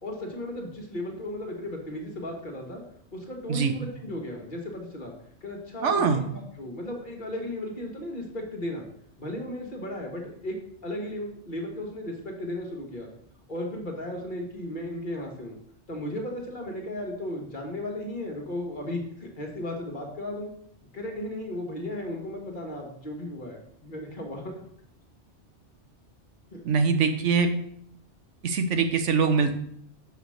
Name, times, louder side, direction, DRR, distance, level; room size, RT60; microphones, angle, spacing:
voice 1, 0.0-2.8 3.1-5.1 5.4-8.9 9.2-13.1 13.5-15.6 15.9-20.5 20.9-24.5 26.5-26.6, left 1 dB, 45° left, 0 dB, 1.8 m, -35 dB
voice 2, 5.8-6.2 26.6-27.5 28.4-29.5, right 5 dB, 85° right, 7 dB, 1.2 m, -23 dB
6.6 x 5.0 x 6.5 m, 0.69 s
omnidirectional pair, 1.2 m